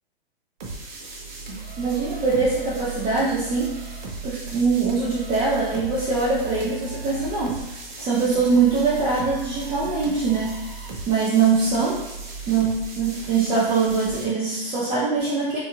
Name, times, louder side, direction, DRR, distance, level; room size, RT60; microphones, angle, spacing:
sound 1, 0.6-14.2, right 3 dB, 50° right, 0.8 m, -36 dB
voice 1, 1.8-3.7 4.2-7.7 8.0-10.6 11.1-12.0 12.5-15.6, right 4 dB, 15° right, -9 dB, 0.5 m, -22 dB
2.6 x 2.2 x 2.9 m, 0.98 s
hypercardioid pair, 115°, 30 cm